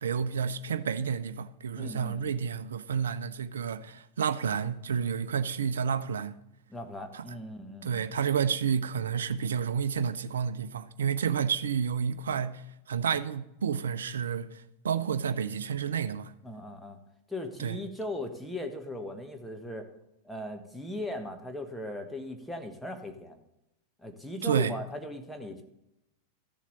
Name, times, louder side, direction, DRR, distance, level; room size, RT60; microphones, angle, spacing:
voice 1, 0.0-6.4 7.1-7.2 7.8-16.3 17.6-17.8 24.4-24.8, right 7 dB, 65° right, 0.6 m, -30 dB
voice 2, 1.7-2.3 6.7-8.0 16.4-17.0 17.3-19.9 20.2-23.4 24.0-25.6, left 1 dB, 5° left, 1.4 m, -38 dB
13.5 x 7.3 x 4.1 m
figure-of-eight pair, 90°, 0 cm